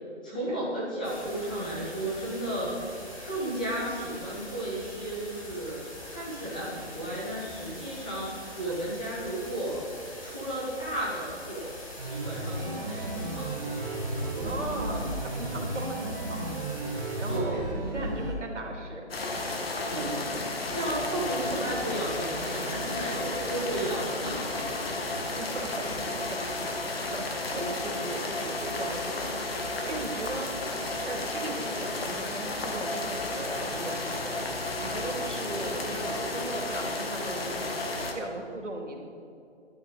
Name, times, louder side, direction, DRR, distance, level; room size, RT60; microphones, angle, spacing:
voice 1, 0.2-2.8 3.2-8.3 8.6-9.9 10.2-11.7 12.0-13.8 17.3-17.6 19.9-20.1 20.7-24.7 26.8-27.0, right 1 dB, 5° left, -7 dB, 0.9 m, -34 dB
sound 1, 1.0-17.4, left 1 dB, 30° left, 2.1 m, -44 dB
sound 2, 12.0-18.3, right 1 dB, 15° right, 2.2 m, -33 dB
voice 2, 14.4-16.4 17.2-19.0 20.1-20.2 25.4-26.4 26.8-34.4 34.8-37.5 37.9-39.0, right 2 dB, 85° right, 1 dB, 2.8 m, -38 dB
sound 3, 19.1-38.1, left 2 dB, 55° left, 1.7 m, -32 dB
13.0 x 11.5 x 4.1 m, 2.6 s
hypercardioid pair, 170°, 35 cm